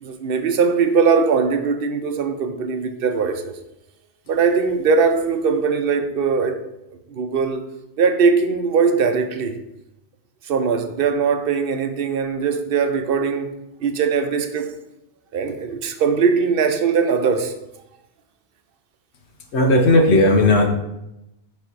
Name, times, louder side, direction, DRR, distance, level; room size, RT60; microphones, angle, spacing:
voice 1, 0.0-3.5 4.3-6.6 7.1-7.6 8.0-9.6 10.5-13.5 13.8-14.7 15.3-17.5, right 5 dB, 65° right, 0.8 m, -20 dB
voice 2, 19.5-20.7, left 2 dB, 85° left, 1.2 m, -15 dB
6.2 x 3.3 x 4.6 m
omnidirectional pair, 1.1 m